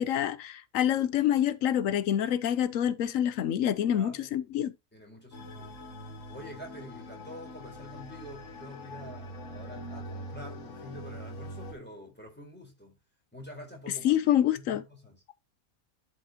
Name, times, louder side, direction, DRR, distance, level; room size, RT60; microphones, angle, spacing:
voice 1, 0.0-4.7 14.0-14.8, left 10 dB, 90° left, 1.1 m, -26 dB
voice 2, 3.9-4.3 4.9-5.8 6.3-13.0 13.3-14.2 14.5-15.2, left 1 dB, 10° left, 4.1 m, -47 dB
sound 1, 5.3-11.7, equal, 75° left, 1.9 m, -43 dB
11.5 x 5.8 x 2.9 m
omnidirectional pair, 1.3 m